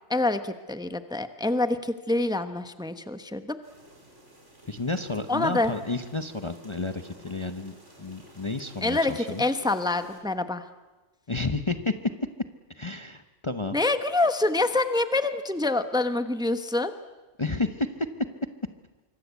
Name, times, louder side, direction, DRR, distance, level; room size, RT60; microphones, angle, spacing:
voice 1, 0.1-3.6 5.3-5.7 8.8-10.7 13.7-16.9, left 2 dB, 5° right, 9 dB, 1.0 m, -26 dB
sound 1, 3.6-10.2, right 1 dB, 75° right, 5.3 m, -52 dB
voice 2, 4.6-9.4 11.3-11.9 12.7-13.8 17.4-18.1, left 3 dB, 25° left, 8 dB, 0.9 m, -31 dB
25.5 x 24.5 x 8.3 m, 1.2 s
omnidirectional pair, 1.2 m